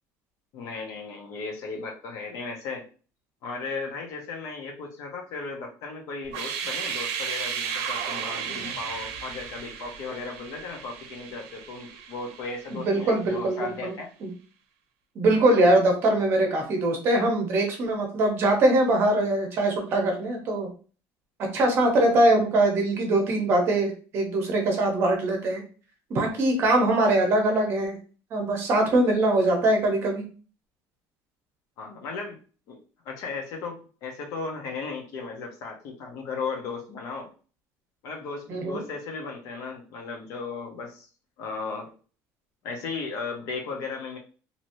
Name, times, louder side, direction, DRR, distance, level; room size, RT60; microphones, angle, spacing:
voice 1, 0.5-2.8 3.4-14.1 31.8-32.4 32.7-32.8 33.0-37.3 38.0-41.1 41.4-41.9 42.6-44.2, left 4 dB, 55° left, 2 dB, 0.9 m, -36 dB
sound 1, 6.2-13.1, right 7 dB, 80° right, 0.6 m, -34 dB
voice 2, 12.7-13.9 14.2-14.3 15.1-20.7 21.5-25.6 26.1-28.0 28.3-30.2 38.5-38.8, right 1 dB, 40° right, 3 dB, 0.9 m, -22 dB
3.1 x 2.9 x 2.7 m, 0.38 s
cardioid pair, 170°, 6 cm